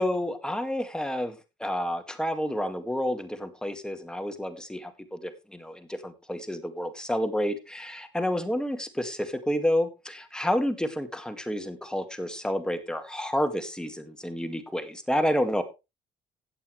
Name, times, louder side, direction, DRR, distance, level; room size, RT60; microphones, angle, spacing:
voice 1, 0.0-15.6, equal, 5° left, 8 dB, 2.1 m, -29 dB
16.0 x 8.5 x 3.3 m, 0.26 s
cardioid pair, 90°, 20 cm